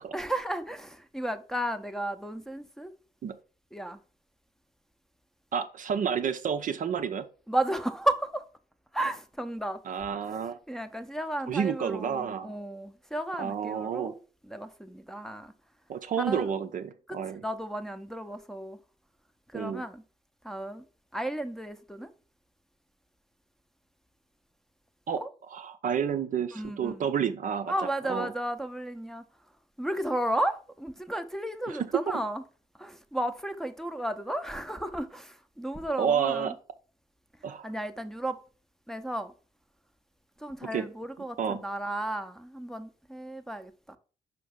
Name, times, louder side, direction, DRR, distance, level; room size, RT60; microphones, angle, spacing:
voice 1, 0.1-2.9 3.7-4.0 7.5-8.4 8.9-9.8 10.3-14.2 14.5-15.5 16.2-16.5 17.1-17.2 17.4-18.8 19.5-20.0 20.4-20.9 21.1-22.1 25.1-25.3 26.5-27.0 27.7-29.2 29.8-32.4 32.8-36.5 37.6-38.4 38.9-39.3 40.4-44.0, right 1 dB, ahead, 0.8 m, -33 dB
voice 2, 5.5-7.3 9.9-10.6 11.5-12.6 13.4-14.1 15.9-17.4 19.5-19.8 25.1-25.2 25.5-28.3 31.7-32.0 36.0-36.6 37.4-37.7 40.6-40.9 41.4-41.6, right 7 dB, 45° right, 0.6 m, -30 dB
5.8 x 5.0 x 3.7 m
figure-of-eight pair, 45°, 19 cm